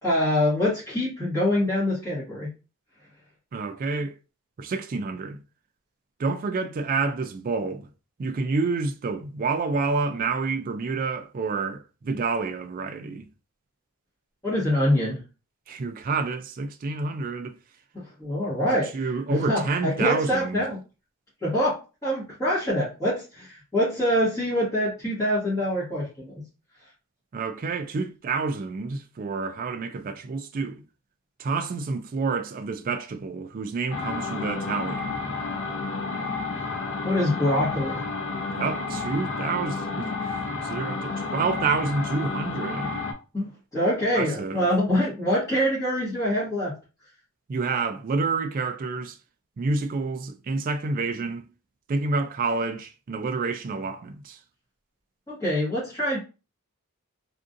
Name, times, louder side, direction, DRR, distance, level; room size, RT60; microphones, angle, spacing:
voice 1, 0.0-2.5 14.4-15.2 17.9-20.8 21.4-26.4 37.0-38.0 43.3-46.7 55.3-56.2, left 1 dB, 15° left, 1.5 m, -25 dB
voice 2, 3.5-4.1 4.6-5.4 6.2-7.9 8.2-13.3 15.7-17.5 18.6-20.6 27.3-30.8 31.4-35.2 38.5-40.3 40.6-43.0 44.1-44.7 47.5-49.2 49.6-51.5 51.9-54.4, right 4 dB, 40° right, 0.3 m, -28 dB
sound 1, 33.9-43.1, left 3 dB, 60° left, 0.6 m, -31 dB
3.6 x 2.6 x 2.5 m
head